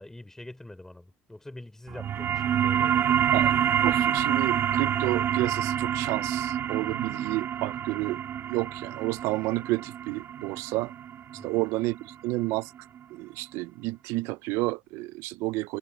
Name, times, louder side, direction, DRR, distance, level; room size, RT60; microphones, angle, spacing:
voice 1, 0.0-3.2 11.3-11.6, left 1 dB, 10° left, 5.0 m, -45 dB
sound 1, 1.9-13.0, right 9 dB, 55° right, 3.2 m, -27 dB
voice 2, 3.8-8.2 8.5-10.9 11.4-12.0 12.2-12.7 13.2-15.8, right 21 dB, 80° right, 0.4 m, -30 dB
supercardioid pair, 80°, 5 cm